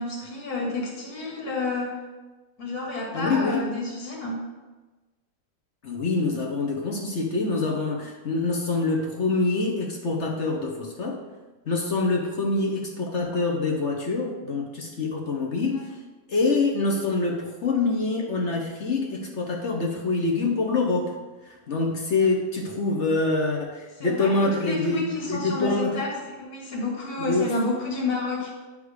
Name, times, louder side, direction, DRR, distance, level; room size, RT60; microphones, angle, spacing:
voice 1, 0.0-2.0 2.6-4.5 15.7-15.8 22.2-22.3 24.0-28.5, left 3 dB, 70° left, -2 dB, 2.2 m, -30 dB
voice 2, 3.1-3.6 5.8-11.2 11.7-15.9 16.3-21.1 21.4-25.9 27.2-27.5, left 3 dB, 50° left, 0 dB, 1.1 m, -25 dB
9.8 x 3.6 x 4.8 m, 1.2 s
omnidirectional pair, 1.7 m